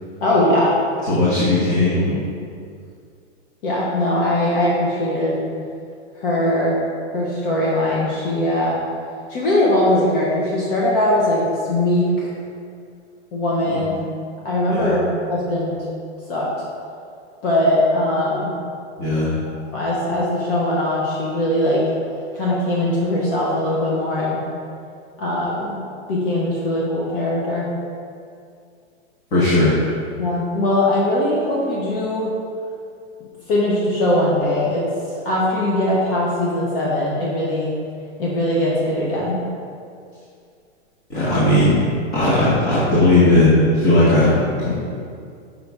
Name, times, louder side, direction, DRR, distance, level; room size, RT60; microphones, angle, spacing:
voice 1, 0.2-0.7 3.6-5.4 6.2-6.8 7.1-8.7 9.3-12.3 13.3-14.0 14.4-15.0 15.3-15.8 16.3-16.5 17.4-18.5 19.7-21.8 22.3-24.4 25.2-25.8 26.1-27.7 30.2-32.3 33.5-34.9 35.2-37.7 38.2-39.4, left 1 dB, 50° left, -5 dB, 1.2 m, -20 dB
voice 2, 1.1-2.2 13.7-13.8 14.7-14.9 19.0-19.3 29.3-29.7 41.1-41.8 42.1-44.7, left 1 dB, 25° left, -10 dB, 1.3 m, -17 dB
5.7 x 5.4 x 3.5 m, 2.3 s
hypercardioid pair, 155°, 35 cm